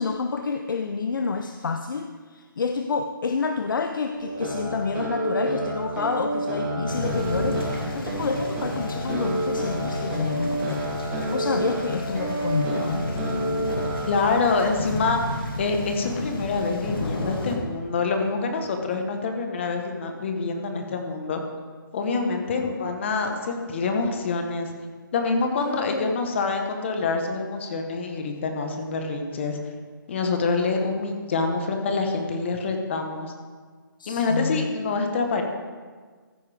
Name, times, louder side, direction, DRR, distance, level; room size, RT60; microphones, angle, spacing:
voice 1, 0.0-13.0 22.3-22.7 25.6-26.2 34.0-34.7, left 5 dB, 65° left, 6 dB, 0.7 m, -29 dB
sound 1, 4.1-14.1, right 1 dB, 15° right, 3.1 m, -29 dB
sound 2, 6.9-17.6, left 2 dB, 90° left, 2.4 m, -33 dB
voice 2, 14.1-15.2 15.6-21.4 21.9-24.7 25.1-29.6 30.1-33.3 34.1-35.4, left 4 dB, 35° left, 4 dB, 1.2 m, -26 dB
14.5 x 9.3 x 3.5 m, 1.5 s
hypercardioid pair, 165°, 12 cm